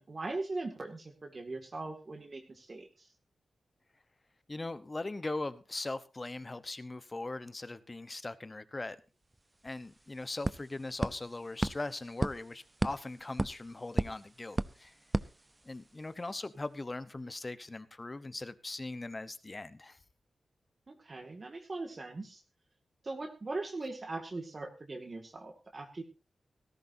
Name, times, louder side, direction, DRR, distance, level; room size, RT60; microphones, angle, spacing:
voice 1, 0.0-3.1 20.9-22.4 23.0-26.0, right 2 dB, 35° right, 4 dB, 2.0 m, -40 dB
voice 2, 4.5-9.0 9.6-14.9 15.6-20.0, left 2 dB, 25° left, 14 dB, 0.9 m, -40 dB
sound 1, 9.3-9.4 9.7-16.1, right 2 dB, 15° right, 0.6 m, -37 dB
18.0 x 15.0 x 2.7 m, 0.31 s
wide cardioid pair, 130°, 0 cm